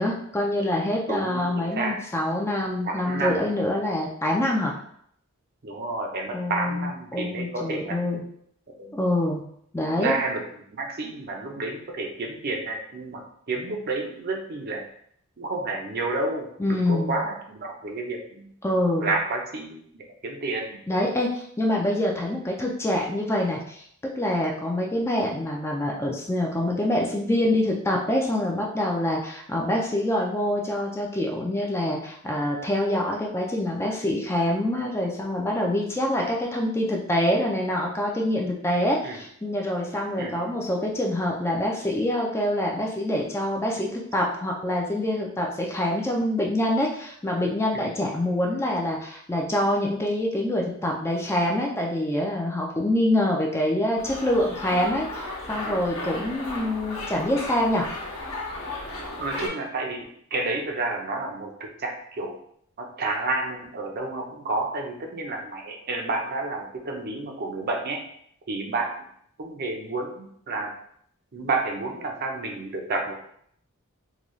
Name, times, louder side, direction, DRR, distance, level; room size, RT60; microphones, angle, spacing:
voice 1, 0.0-4.7 6.3-8.2 8.9-9.4 9.7-10.1 16.6-17.2 18.6-19.1 20.9-23.8 24.2-57.9, left 1 dB, 10° left, -1 dB, 0.4 m, -25 dB
voice 2, 1.1-2.0 2.8-3.5 5.6-8.0 8.8-9.1 10.0-14.8 15.4-18.5 19.0-20.8 39.0-39.2 40.2-40.4 47.7-48.0 55.7-55.8 59.2-62.4 62.8-68.0 68.5-68.9 69.4-70.7 71.3-73.1, right 3 dB, 45° right, 1 dB, 0.6 m, -30 dB
sound 1, 54.0-59.5, left 2 dB, 65° left, 1.0 m, -35 dB
3.8 x 2.3 x 3.0 m, 0.67 s
head